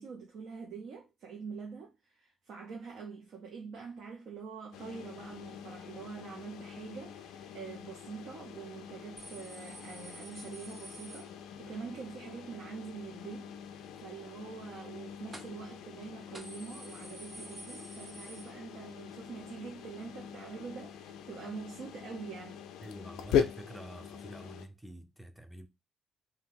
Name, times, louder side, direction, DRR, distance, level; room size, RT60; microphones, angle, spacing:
voice 1, 0.0-11.3 11.6-13.8 14.0-22.6, right 5 dB, 75° right, 0.7 m, -45 dB
sound 1, 4.7-24.7, left 8 dB, 90° left, 0.3 m, -41 dB
sound 2, 9.2-11.9 15.3-15.7 16.0-16.1 16.3-19.1 19.4-19.5 20.5-20.6, right 1 dB, 25° right, 0.9 m, -50 dB
voice 2, 22.8-25.7, right 1 dB, ahead, 0.5 m, -47 dB
2.7 x 2.3 x 3.7 m
cardioid pair, 90°, 0 cm